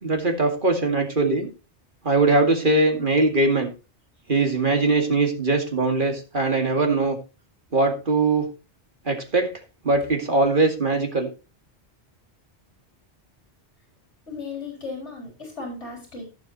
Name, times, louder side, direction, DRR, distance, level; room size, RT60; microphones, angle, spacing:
voice 1, 0.0-1.5 2.0-3.7 4.3-7.2 7.7-8.5 9.1-9.5 9.8-11.3, right 3 dB, 50° right, 3 dB, 2.3 m, -21 dB
voice 2, 14.3-16.3, left 4 dB, 80° left, -1 dB, 4.3 m, -35 dB
15.5 x 7.5 x 3.1 m, 0.31 s
omnidirectional pair, 1.2 m